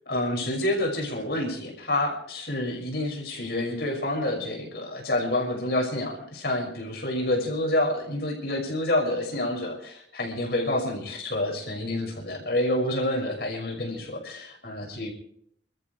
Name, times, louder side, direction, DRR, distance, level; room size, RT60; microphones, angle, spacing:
voice 1, 0.1-15.1, left 1 dB, 60° left, 1 dB, 6.0 m, -28 dB
28.5 x 14.0 x 3.3 m, 0.67 s
head